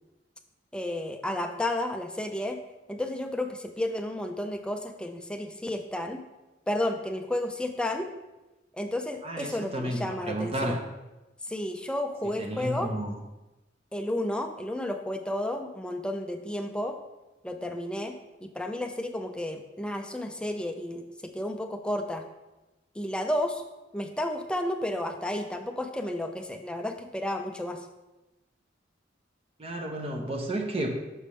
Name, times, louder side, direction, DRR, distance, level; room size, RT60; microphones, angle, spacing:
voice 1, 0.7-2.6 2.9-6.2 6.7-8.1 8.7-10.8 11.4-12.9 13.9-17.0 17.4-18.2 18.4-22.2 22.9-23.6 23.9-27.9, left 1 dB, 5° left, 5 dB, 0.4 m, -32 dB
voice 2, 9.2-10.8 12.4-13.1 29.6-31.0, right 1 dB, 30° right, 2 dB, 0.6 m, -32 dB
6.1 x 3.3 x 5.5 m, 1.0 s
head